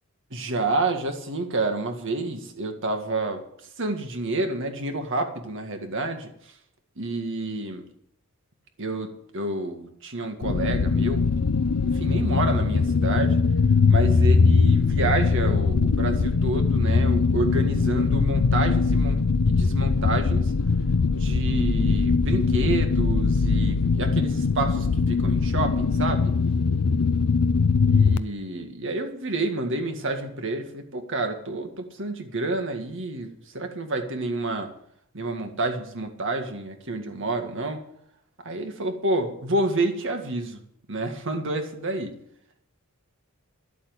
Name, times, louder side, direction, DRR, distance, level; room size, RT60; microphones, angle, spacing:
voice 1, 0.3-6.6 7.0-7.8 8.8-11.5 11.8-13.4 13.9-20.5 21.1-26.3 27.9-34.7 35.1-37.8 38.4-40.6 40.9-42.2, right 2 dB, 60° right, 5 dB, 1.9 m, -29 dB
sound 1, 10.4-28.2, left 4 dB, 85° left, 0.6 m, -21 dB
11.5 x 8.3 x 8.0 m, 0.70 s
head